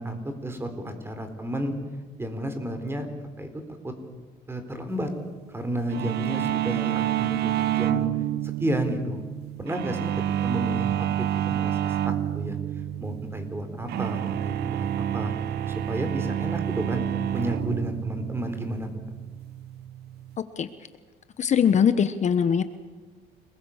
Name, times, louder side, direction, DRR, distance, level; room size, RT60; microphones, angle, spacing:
voice 1, 0.0-1.7 2.2-3.1 3.4-3.5 3.8-3.9 4.5-5.1 5.5-8.1 8.6-9.2 9.6-10.1 10.4-10.9 11.2-11.9 12.3-12.6 13.0-15.3 15.7-17.0 17.3-18.9, right 1 dB, 15° right, 7 dB, 4.3 m, -31 dB
sound 1, 5.9-20.4, right 11 dB, 75° right, 1.2 m, -29 dB
voice 2, 21.4-22.6, left 7 dB, 45° left, 11 dB, 1.2 m, -21 dB
29.5 x 21.0 x 7.4 m, 1.3 s
cardioid pair, 110°, 17 cm